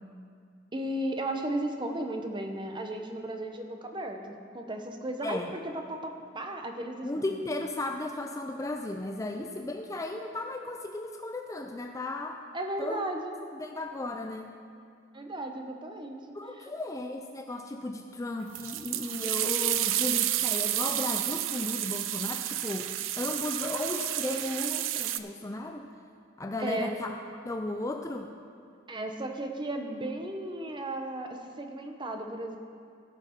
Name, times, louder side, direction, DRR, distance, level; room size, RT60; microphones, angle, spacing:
voice 1, 0.7-5.4 5.7-7.4 12.5-13.3 15.1-16.4 26.6-27.0 28.9-32.6, right 1 dB, 25° right, 4 dB, 0.8 m, -35 dB
voice 2, 7.0-12.4 12.8-13.0 13.5-14.5 16.3-25.9 26.4-27.1 27.4-28.3, left 2 dB, 15° left, 3 dB, 0.4 m, -35 dB
sound 1, 18.5-25.2, right 13 dB, 85° right, 0.4 m, -30 dB
16.5 x 5.9 x 4.5 m, 2.3 s
head